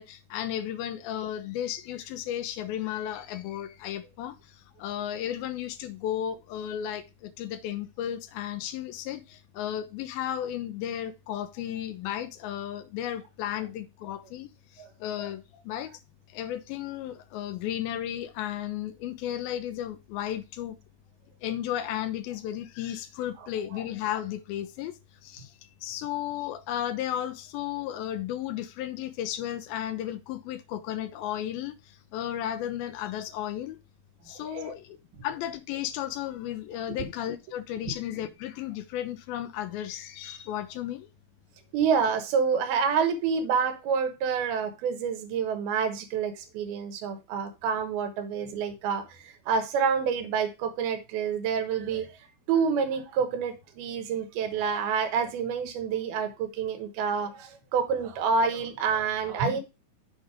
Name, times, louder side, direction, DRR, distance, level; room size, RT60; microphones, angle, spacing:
voice 1, 0.0-15.9 16.3-20.8 21.4-24.9 25.2-25.5 25.8-33.8 34.3-35.0 35.2-41.1, left 11 dB, 85° left, 2.4 m, -34 dB
voice 2, 34.3-34.8 37.0-37.1 37.9-38.0 41.7-52.2 52.5-59.6, right 6 dB, 80° right, 3.0 m, -28 dB
7.2 x 4.7 x 4.9 m
omnidirectional pair, 4.4 m